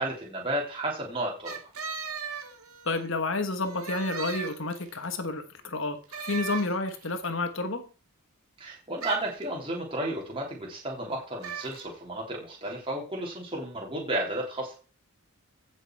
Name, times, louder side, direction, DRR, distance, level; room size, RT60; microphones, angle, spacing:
voice 1, 0.0-1.5 8.6-14.7, right 1 dB, 25° right, -3 dB, 3.3 m, -32 dB
sound 1, 1.5-3.1 3.6-5.0 6.1-7.2 9.0-9.4 11.4-11.9, right 6 dB, 80° right, 2.0 m, -37 dB
voice 2, 2.8-7.8, left 3 dB, 60° left, 9 dB, 1.4 m, -30 dB
16.0 x 6.5 x 4.7 m, 0.37 s
head